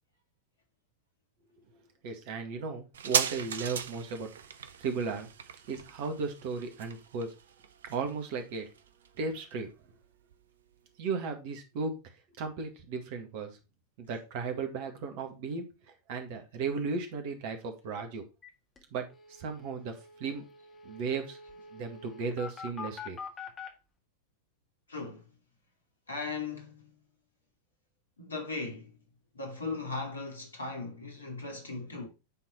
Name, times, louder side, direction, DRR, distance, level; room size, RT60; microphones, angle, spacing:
voice 1, 2.0-4.3 4.8-5.3 5.7-7.3 7.9-8.7 9.2-9.7 11.0-11.9 12.4-13.6 14.0-15.7 16.1-18.2 18.9-20.4 20.8-21.4 21.7-23.2, right 4 dB, 45° right, 1.9 m, -35 dB
sound 1, 2.9-10.0 10.3-10.4, right 7 dB, 65° right, 0.7 m, -37 dB
sound 2, 18.4-18.5 18.8-18.9 19.1-23.7, left 5 dB, 20° left, 1.9 m, -45 dB
voice 2, 24.9-25.3 26.1-27.0 28.2-29.0 29.3-32.1, left 3 dB, 75° left, 2.5 m, -38 dB
9.3 x 4.1 x 4.4 m
figure-of-eight pair, 90°, 0 cm